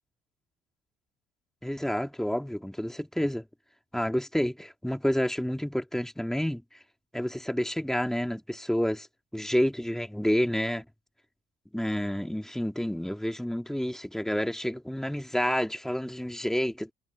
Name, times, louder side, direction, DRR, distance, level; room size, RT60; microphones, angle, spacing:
voice 1, 1.6-3.4 3.9-6.6 7.1-9.1 9.3-10.8 11.7-16.9, equal, 5° left, 2.0 m, -29 dB
cardioid pair, 110°, 17 cm